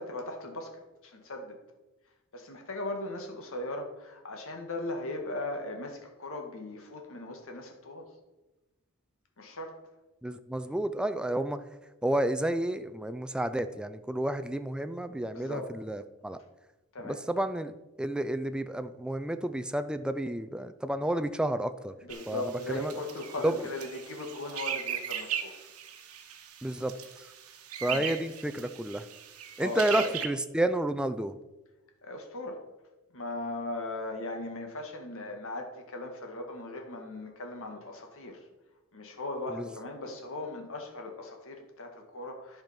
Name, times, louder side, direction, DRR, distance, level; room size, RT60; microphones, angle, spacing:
voice 1, 0.0-1.6 2.3-8.1 9.4-9.8 15.3-15.7 16.9-17.2 22.0-25.7 27.8-28.1 29.6-30.1 32.0-32.6 33.1-38.4 38.9-42.6, left 2 dB, 65° left, 3 dB, 1.8 m, -38 dB
voice 2, 10.2-11.6 12.0-16.4 17.0-21.9 22.3-22.4 22.7-22.9 23.4-23.7 26.6-26.9 27.8-29.0 29.6-31.3 39.5-39.7, right 1 dB, 5° right, 10 dB, 0.4 m, -31 dB
sound 1, 22.1-30.3, right 8 dB, 70° right, 1.1 m, -39 dB
10.5 x 5.3 x 5.8 m, 1.1 s
head